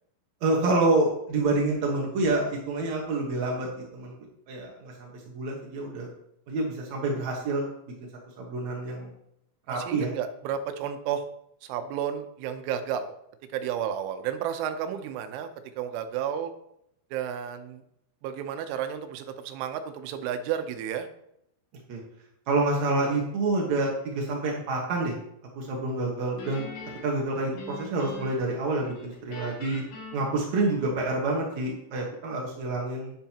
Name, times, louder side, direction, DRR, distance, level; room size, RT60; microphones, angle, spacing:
voice 1, 0.4-4.1 4.5-6.1 6.5-7.7 8.4-9.1 9.7-10.1 21.9-22.0 22.5-25.2 25.5-26.7 27.0-29.8 30.1-33.1, right 2 dB, 65° right, -1 dB, 1.7 m, -27 dB
voice 2, 9.7-11.3 11.6-13.2 13.5-15.5 15.8-16.5 17.1-17.8 18.2-21.1, right 9 dB, 85° right, 8 dB, 3.3 m, -32 dB
Guitar, 26.4-28.5 28.8-31.2, left 3 dB, 75° left, 4.6 m, -42 dB
10.5 x 10.0 x 2.9 m, 0.76 s
omnidirectional pair, 5.4 m